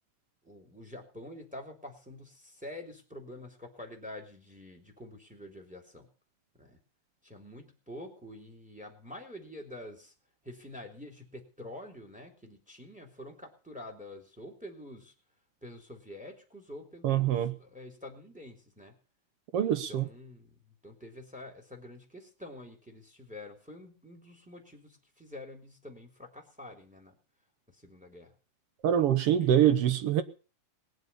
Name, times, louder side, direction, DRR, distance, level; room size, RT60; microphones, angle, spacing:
voice 1, 0.4-6.1 6.6-6.8 7.2-10.1 10.4-15.1 15.6-18.9 19.6-27.1 27.7-28.3 29.4-29.5, left 1 dB, ahead, 3.1 m, -47 dB
voice 2, 17.0-17.5 19.5-20.0 28.8-30.2, right 10 dB, 65° right, 1.6 m, -24 dB
20.5 x 8.0 x 6.9 m
omnidirectional pair, 3.5 m